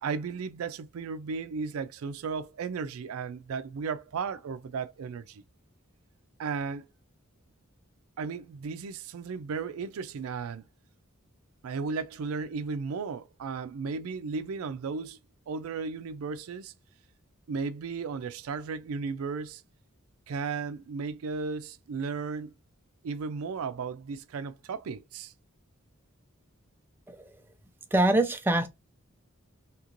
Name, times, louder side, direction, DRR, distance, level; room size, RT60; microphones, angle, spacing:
voice 1, 0.0-5.4 6.4-6.9 8.2-10.6 11.6-15.2 15.5-16.7 17.5-19.6 20.3-22.6 23.0-25.3, right 5 dB, 90° right, 0.4 m, -35 dB
voice 2, 27.9-28.7, right 1 dB, 10° right, 0.3 m, -24 dB
2.9 x 2.5 x 2.9 m
head